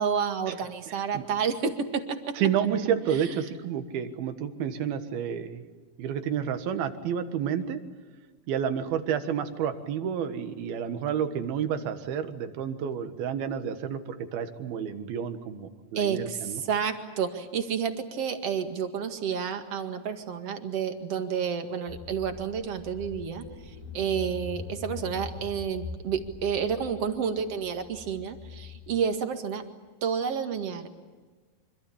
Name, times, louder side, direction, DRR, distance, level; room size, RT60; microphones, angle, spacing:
voice 1, 0.0-2.4 15.9-23.4 23.9-29.6 30.0-30.9, right 7 dB, 45° right, 6 dB, 2.5 m, -30 dB
voice 2, 0.9-1.2 2.4-5.6 6.0-7.8 8.5-16.6, right 8 dB, 75° right, 9 dB, 3.4 m, -30 dB
Car / Engine, 21.9-28.9, left 4 dB, 45° left, 5.0 m, -42 dB
25.5 x 25.5 x 8.7 m, 1.4 s
omnidirectional pair, 4.4 m